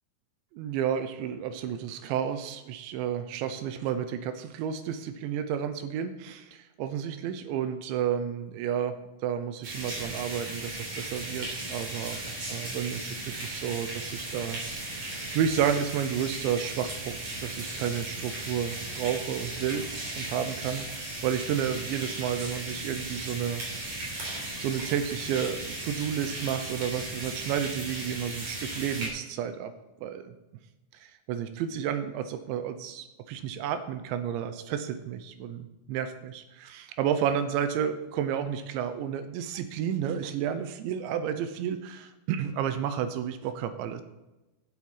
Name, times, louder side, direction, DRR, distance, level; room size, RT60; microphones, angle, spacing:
voice 1, 0.5-12.2 12.5-14.6 15.0-19.9 20.1-23.6 24.3-29.7 30.0-30.4 31.3-44.0, right 9 dB, 80° right, 10 dB, 2.9 m, -31 dB
sound 1, 9.6-29.1, right 2 dB, 40° right, 4.5 m, -36 dB
12.5 x 7.7 x 5.7 m, 1.0 s
omnidirectional pair, 5.6 m